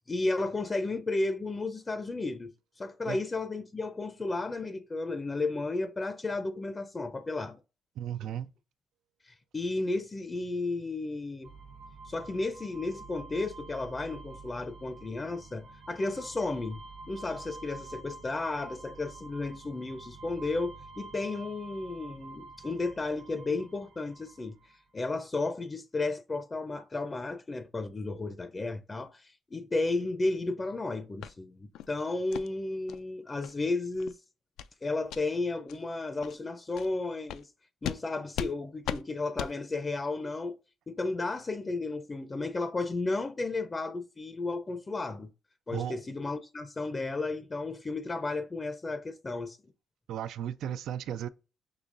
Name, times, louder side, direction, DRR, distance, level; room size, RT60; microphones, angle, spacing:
voice 1, 0.1-2.5 2.8-7.6 8.2-8.3 9.2-11.5 12.1-16.8 17.1-24.6 24.9-34.2 34.8-37.5 37.8-40.6 40.9-45.3 45.7-49.6, left 3 dB, 25° left, 0.5 m, -33 dB
voice 2, 8.0-8.5 45.7-46.0 50.1-51.3, right 10 dB, 80° right, 0.3 m, -35 dB
sound 1, 11.4-24.9, right 3 dB, 65° right, 1.0 m, -48 dB
sound 2, 31.2-31.3 31.7-31.9 32.3-32.5 32.9-33.0 33.4-33.5 33.9-34.1 34.6-34.7 35.1-35.2 35.7-35.8 36.2-36.4 36.8-36.9 37.3-37.4 37.8-38.0 38.3-38.5 38.8-39.0 39.4-39.5, left 10 dB, 85° left, 0.3 m, -36 dB
6.6 x 2.9 x 2.5 m
cardioid pair, 90°, 0 cm